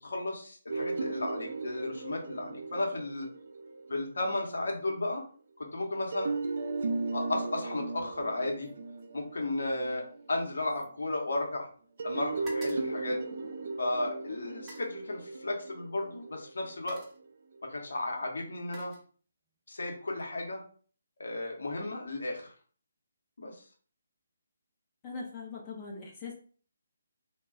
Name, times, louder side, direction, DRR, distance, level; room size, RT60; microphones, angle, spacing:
voice 1, 0.0-3.3 3.9-5.2 5.6-6.3 7.1-8.7 9.1-11.7 12.0-13.2 13.8-17.0 17.6-18.9 19.7-20.6 21.2-22.5 23.4-23.6, left 2 dB, 60° left, 1 dB, 0.8 m, -34 dB
sound 1, 0.7-4.5 6.1-10.6 12.0-17.2, right 3 dB, 45° right, 0.4 m, -37 dB
sound 2, 7.9-8.3 8.6-11.7 12.0-13.9 14.5-15.0 16.0-16.2 16.6-17.3 18.2-19.6 19.9-20.3, right 1 dB, 15° right, 0.7 m, -54 dB
voice 2, 25.0-26.3, left 4 dB, 20° left, -3 dB, 0.5 m, -41 dB
2.2 x 2.1 x 3.6 m, 0.43 s
figure-of-eight pair, 145°, 0 cm